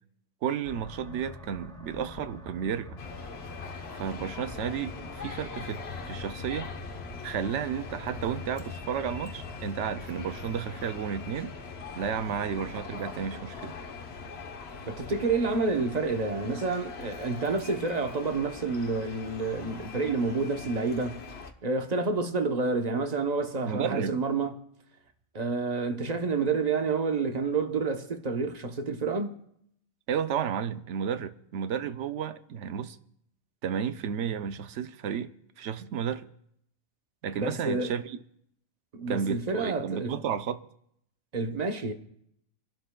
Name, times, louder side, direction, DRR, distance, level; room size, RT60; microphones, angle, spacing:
voice 1, 0.4-3.0 3.9-6.7 7.2-11.5 12.0-13.8 23.6-24.2 30.1-33.0 33.6-35.3 35.6-36.3 37.2-38.2 39.1-40.6, right 8 dB, 65° right, 0.9 m, -32 dB
sound 1, 0.6-16.0, left 3 dB, 30° left, 2.9 m, -45 dB
sound 2, 3.0-21.5, left 5 dB, 50° left, 1.1 m, -43 dB
voice 2, 14.9-21.2 21.6-24.5 25.3-29.3 37.4-37.9 39.0-40.2 41.3-41.9, right 4 dB, 35° right, 0.8 m, -29 dB
29.5 x 11.5 x 2.3 m
omnidirectional pair, 1.5 m